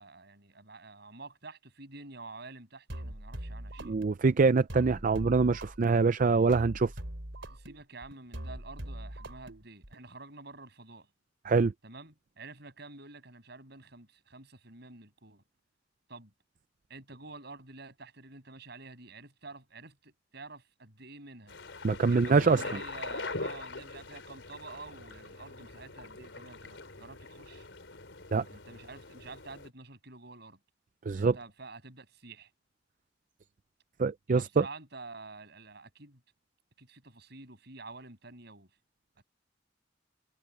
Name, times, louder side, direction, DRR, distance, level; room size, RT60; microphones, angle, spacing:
voice 1, 0.0-4.0 7.4-11.1 11.8-15.4 16.1-16.3 16.9-21.6 22.0-27.7 28.5-30.6 31.1-32.5 34.3-36.2 36.8-38.7, right 3 dB, 60° right, 7.8 m, -49 dB
sound 1, 2.9-10.1, right 1 dB, 85° right, 3.3 m, -42 dB
voice 2, 3.8-6.9 11.5-11.7 21.8-22.6 28.3-28.4 31.1-31.4 34.0-34.6, right 4 dB, 45° right, 0.4 m, -24 dB
sound 2, 21.5-29.7, left 3 dB, 85° left, 3.9 m, -43 dB
head